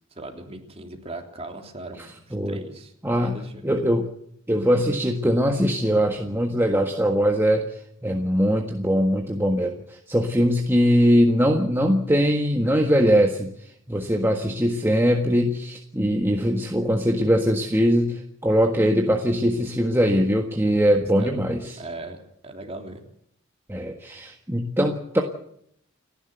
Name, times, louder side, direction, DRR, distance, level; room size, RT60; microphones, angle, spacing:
voice 1, 0.1-3.7 21.2-21.3 21.8-22.2 22.4-23.0, right 2 dB, 30° right, 3 dB, 3.3 m, -38 dB
voice 2, 3.0-4.1 4.5-7.7 8.0-13.5 13.9-21.8 23.7-25.2, equal, 10° right, 2 dB, 1.5 m, -21 dB
30.0 x 11.0 x 8.0 m, 0.70 s
head